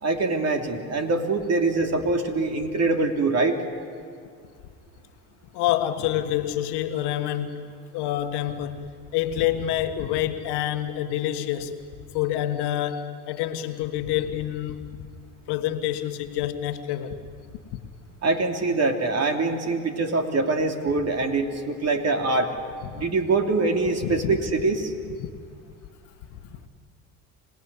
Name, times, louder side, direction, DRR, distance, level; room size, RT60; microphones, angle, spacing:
voice 1, 0.0-3.6 18.2-22.5 22.9-24.9, right 3 dB, 40° right, 3.0 m, -24 dB
voice 2, 5.5-8.9 9.1-11.7 12.1-14.8 15.5-17.2 24.0-24.4 25.2-25.3 26.4-26.5, left 12 dB, 70° left, 1.7 m, -27 dB
26.5 x 18.0 x 9.7 m
supercardioid pair, 80°, 42 cm